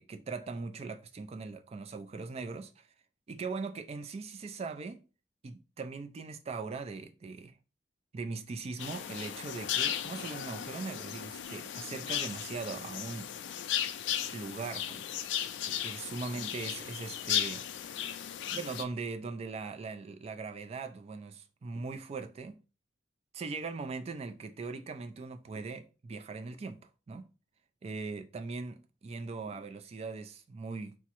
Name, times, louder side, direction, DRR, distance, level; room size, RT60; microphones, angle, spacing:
voice 1, 0.0-2.9 3.3-5.0 5.4-7.6 8.1-13.3 14.3-15.0 15.4-17.7 18.5-22.6 23.3-27.3 27.8-31.0, right 4 dB, 35° right, 0.3 m, -40 dB
sound 1, 8.8-18.8, left 10 dB, 75° left, 0.3 m, -36 dB
3.5 x 2.0 x 2.9 m
head